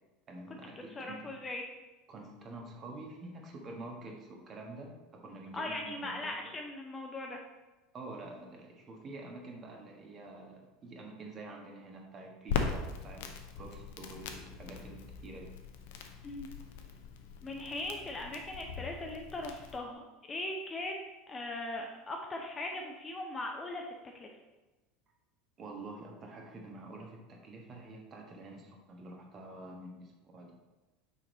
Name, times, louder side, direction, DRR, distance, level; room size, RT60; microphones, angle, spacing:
voice 1, 0.3-1.2 2.1-6.3 7.9-13.3 13.5-15.5 25.6-30.5, right 2 dB, 35° right, 1 dB, 1.3 m, -47 dB
voice 2, 1.0-1.6 5.5-7.4 16.2-16.5 17.4-24.3, left 2 dB, 20° left, 1 dB, 0.7 m, -39 dB
Crackle, 12.5-19.8, left 6 dB, 60° left, 0.6 m, -40 dB
5.9 x 4.6 x 4.0 m, 1.1 s
figure-of-eight pair, 75°, 0 cm